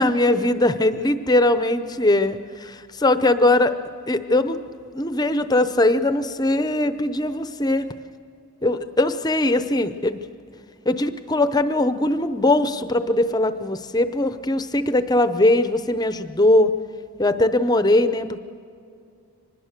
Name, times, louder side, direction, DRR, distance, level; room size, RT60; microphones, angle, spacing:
voice 1, 0.0-3.7 4.1-4.6 4.9-7.9 8.6-10.2 10.9-16.7 17.2-18.4, left 1 dB, 15° left, 11 dB, 0.6 m, -20 dB
24.5 x 20.5 x 6.6 m, 2.3 s
head